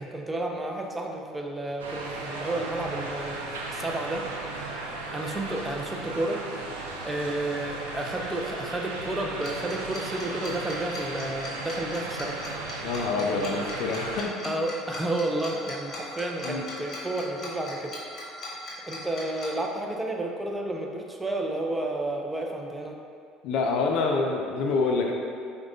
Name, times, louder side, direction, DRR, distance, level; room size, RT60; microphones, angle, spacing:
voice 1, 0.0-4.2 5.1-6.4 7.0-12.4 14.4-18.0 18.9-23.0, right 2 dB, 15° right, 1 dB, 0.4 m, -31 dB
sound 1, 1.8-14.2, right 2 dB, 85° right, 0.3 m, -36 dB
Tick-tock, 9.4-19.5, left 2 dB, 40° left, 1.0 m, -39 dB
voice 2, 12.8-14.4 16.4-16.6 23.4-25.1, left 4 dB, 65° left, 1 dB, 0.3 m, -26 dB
4.6 x 2.2 x 2.5 m, 2.3 s
hypercardioid pair, 65°, 0 cm